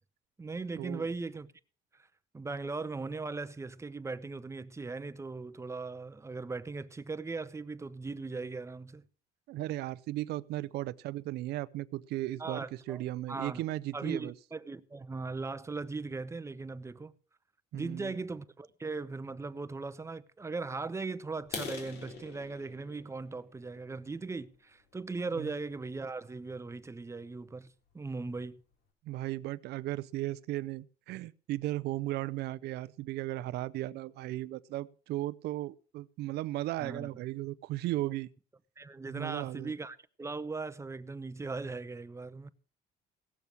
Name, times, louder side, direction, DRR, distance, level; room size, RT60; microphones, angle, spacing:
voice 1, 0.4-1.5 1.9-2.1 2.3-9.0 12.4-13.0 13.3-13.6 13.9-17.1 17.7-28.6 36.8-37.1 38.8-42.5, right 3 dB, 15° right, 0.8 m, -39 dB
voice 2, 9.5-14.3 17.7-18.1 25.4-25.5 29.0-38.3 39.1-39.7, right 16 dB, 75° right, 0.5 m, -36 dB
sound 1, 21.4-25.2 25.7-25.9 26.4-26.5 26.9-27.0 27.4-27.5 27.9-28.0 28.2-28.7, left 5 dB, 70° left, 3.3 m, -45 dB
17.5 x 7.0 x 6.0 m
cardioid pair, 110°, 17 cm